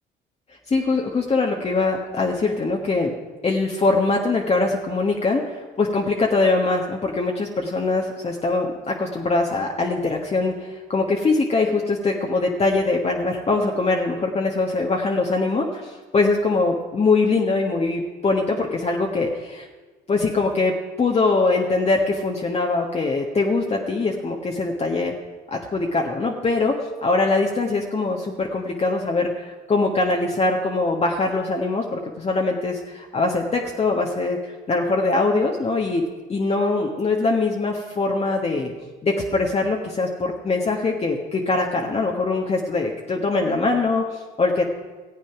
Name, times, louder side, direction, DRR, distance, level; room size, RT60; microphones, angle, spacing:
voice 1, 0.7-3.1 3.4-19.7 20.1-25.1 25.5-36.0 36.3-38.7 39.0-44.6, left 3 dB, 35° left, 0 dB, 1.3 m, -22 dB
15.0 x 8.3 x 5.9 m, 1.3 s
supercardioid pair, 70°, 19 cm